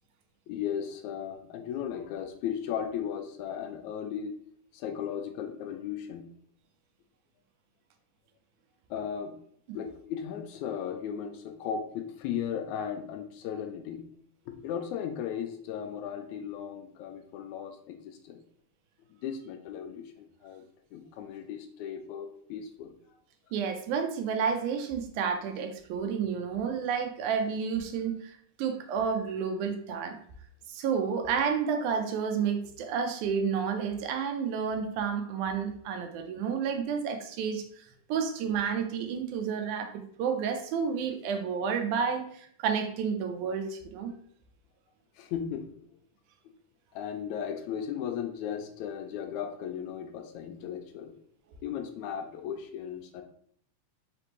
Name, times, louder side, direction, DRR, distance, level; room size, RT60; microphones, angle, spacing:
voice 1, 0.5-4.4 4.7-6.3 8.9-9.3 9.7-14.0 14.5-18.4 19.2-20.6 20.9-22.9 45.2-45.7 46.5-46.6 46.9-51.1 51.6-53.2, left 8 dB, 80° left, 6 dB, 1.8 m, -36 dB
voice 2, 23.5-30.2 30.7-44.1, right 6 dB, 85° right, 6 dB, 2.0 m, -30 dB
5.0 x 3.3 x 3.0 m, 0.63 s
omnidirectional pair, 3.5 m